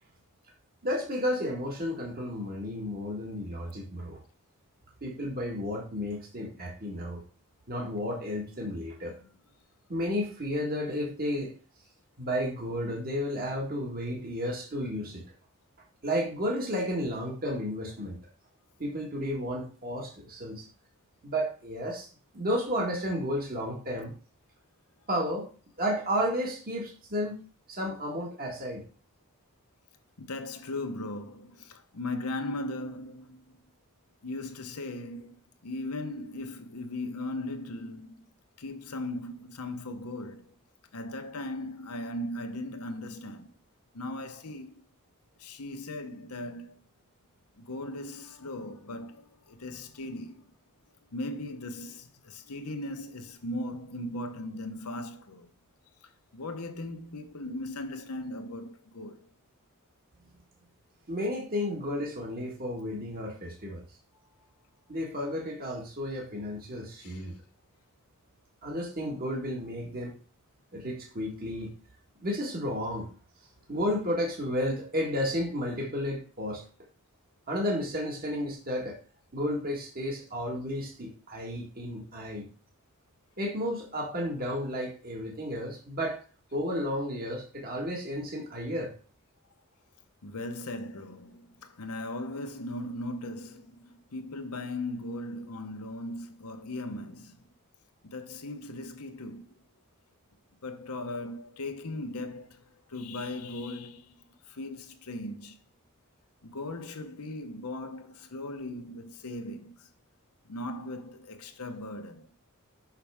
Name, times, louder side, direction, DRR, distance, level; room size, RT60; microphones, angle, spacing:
voice 1, 0.8-4.2 5.0-7.2 7.7-9.2 9.9-11.5 12.2-15.2 16.0-18.2 18.8-20.7 21.2-22.1 22.3-24.1 25.1-25.5 25.8-27.4 27.7-28.8 61.1-63.8 64.9-67.3 68.6-70.1 70.7-71.7 72.2-73.1 73.7-76.6 77.5-79.0 79.3-82.5 83.4-86.2 86.5-88.9, equal, 45° right, 1.6 m, -32 dB
voice 2, 30.2-33.6 34.2-38.3 38.6-40.5 40.9-43.5 43.9-44.8 45.4-46.8 47.6-50.5 51.1-55.5 56.0-59.3 67.0-67.3 90.2-97.4 98.0-99.5 100.6-105.6 106.4-109.9 110.4-112.3, left 2 dB, 85° left, 1.0 m, -38 dB
5.9 x 5.8 x 3.5 m
head